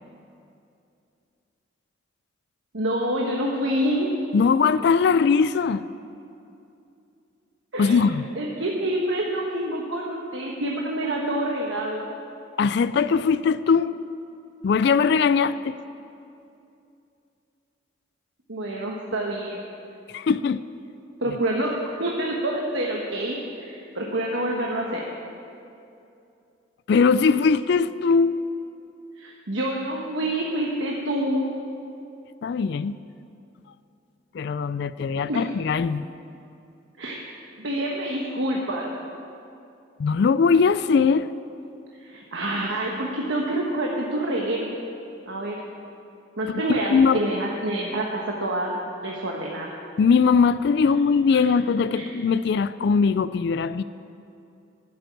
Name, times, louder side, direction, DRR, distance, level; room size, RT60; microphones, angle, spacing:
voice 1, 2.7-4.1 7.7-8.0 8.4-12.0 18.5-19.6 21.2-25.0 29.2-31.5 35.3-35.4 37.0-37.2 37.6-38.9 42.0-44.7 45.3-45.6 46.4-48.7 49.0-49.7 51.3-51.4 52.0-52.1, right 1 dB, 75° right, -2 dB, 1.3 m, -27 dB
voice 2, 4.3-5.8 7.8-8.2 12.6-14.0 14.6-15.8 20.1-20.6 26.9-28.4 32.4-33.0 34.3-36.0 40.0-41.3 46.7-47.2 50.0-53.8, left 5 dB, 60° left, 14 dB, 0.3 m, -20 dB
12.0 x 7.9 x 9.2 m, 2.6 s
head